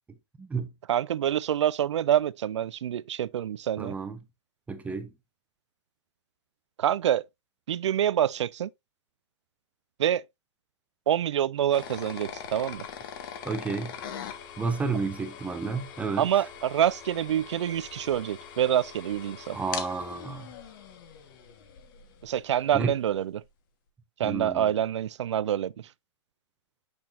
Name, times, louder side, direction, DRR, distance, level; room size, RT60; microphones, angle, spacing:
voice 1, 0.4-0.7 3.8-4.2 4.7-5.1 13.4-14.0 14.6-16.3 19.5-20.5 22.7-22.9 24.2-24.7, right 4 dB, 10° right, 0.8 m, -31 dB
voice 2, 0.9-4.0 6.8-7.2 7.7-8.7 10.0-10.2 11.1-12.8 16.2-19.6 22.2-23.4 24.2-25.9, right 10 dB, 80° right, 0.4 m, -26 dB
sound 1, 11.7-22.5, left 8 dB, 45° left, 1.3 m, -42 dB
6.5 x 6.0 x 2.5 m
hypercardioid pair, 135°, 15 cm